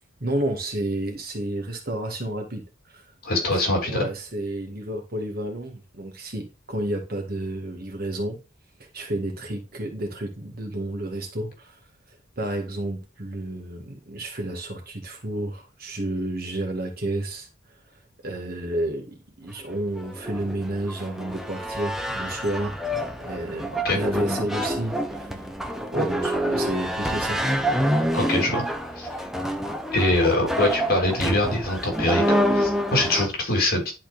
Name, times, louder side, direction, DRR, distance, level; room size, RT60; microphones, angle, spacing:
voice 1, 0.2-2.6 2.9-3.0 3.4-8.4 8.9-11.8 12.4-17.5 18.2-22.8 23.2-25.3 25.9-27.4, right 1 dB, 45° right, 1.9 m, -31 dB
voice 2, 3.2-4.1 23.8-24.0 28.1-28.6 29.0-29.1 29.9-33.9, left 1 dB, 45° left, 3.1 m, -23 dB
sound 1, 19.8-33.3, equal, ahead, 0.7 m, -27 dB
11.0 x 4.4 x 2.5 m
head